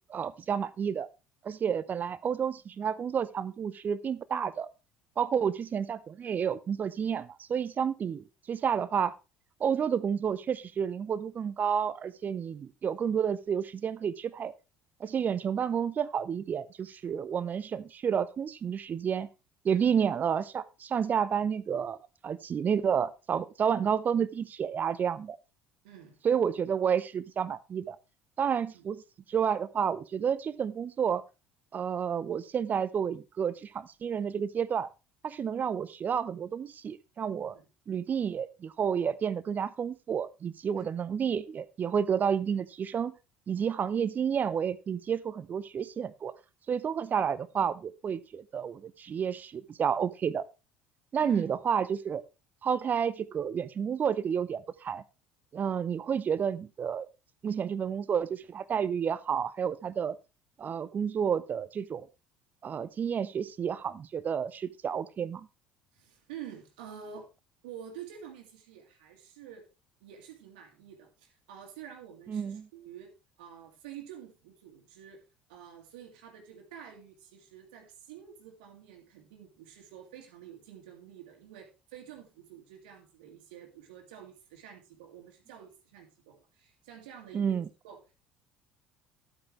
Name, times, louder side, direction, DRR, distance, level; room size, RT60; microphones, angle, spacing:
voice 1, 0.1-1.1 1.4-4.7 5.2-9.1 9.6-14.5 15.0-19.3 19.6-22.0 22.2-25.4 26.2-28.0 28.4-29.0 29.3-31.2 31.7-34.9 35.2-37.5 37.9-43.1 43.5-46.3 46.7-50.4 51.1-52.2 52.6-55.0 55.5-57.1 57.4-60.2 60.6-62.1 62.6-65.5 72.3-72.7 87.3-87.6, right 7 dB, 35° right, 16 dB, 0.7 m, -30 dB
voice 2, 25.8-26.2 28.7-28.9 37.5-37.7 40.7-40.9 51.2-51.5 65.9-67.3 67.6-69.7 70.0-75.2 75.5-87.6 87.8-88.0, right 9 dB, 65° right, 2 dB, 2.0 m, -48 dB
12.0 x 8.6 x 3.2 m, 0.28 s
figure-of-eight pair, 60°, 5 cm